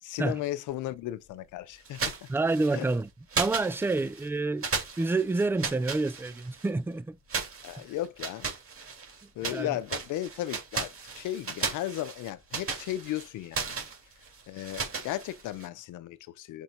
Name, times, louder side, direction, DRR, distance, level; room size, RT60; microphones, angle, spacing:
voice 1, 0.0-2.1 2.7-2.9 7.6-8.5 9.4-13.8 14.5-16.6, left 14 dB, 85° left, 0.7 m, -35 dB
sound 1, 1.8-3.0 3.3-4.3 4.6-6.7 7.3-9.6 9.9-15.7, right 5 dB, 45° right, 3.0 m, -35 dB
voice 2, 2.3-3.1 3.4-4.7 5.0-7.2 9.2-9.7, right 3 dB, 10° right, 0.3 m, -28 dB
5.5 x 3.9 x 4.4 m
cardioid pair, 90°, 30 cm